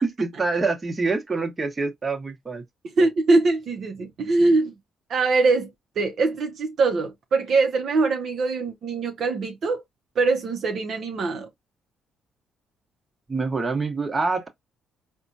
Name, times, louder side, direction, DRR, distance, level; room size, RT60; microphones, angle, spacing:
voice 1, 0.0-2.6 13.3-14.5, right 3 dB, 25° right, 1.0 m, -26 dB
voice 2, 3.0-4.7 5.1-9.8 10.2-11.5, right 3 dB, 60° right, 0.7 m, -22 dB
4.2 x 2.2 x 2.6 m
supercardioid pair, 70°, 0 cm